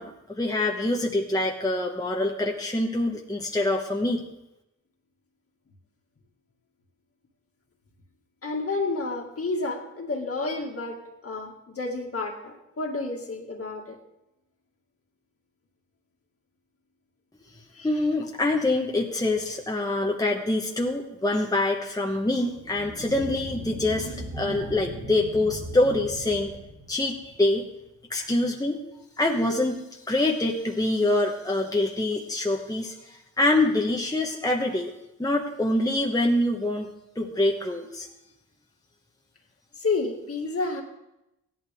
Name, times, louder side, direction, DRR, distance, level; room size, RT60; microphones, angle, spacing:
voice 1, 0.0-4.3 17.8-26.6 26.9-27.7 28.1-28.8 29.2-34.9 35.2-36.9 37.1-38.1, left 2 dB, 10° left, 0 dB, 1.3 m, -25 dB
voice 2, 8.4-14.0 17.7-18.1 39.8-40.8, left 3 dB, 45° left, 1 dB, 2.2 m, -30 dB
sound 1, 22.5-27.5, equal, 50° right, 4.1 m, -39 dB
15.5 x 11.0 x 3.6 m, 0.87 s
cardioid pair, 85°, 32 cm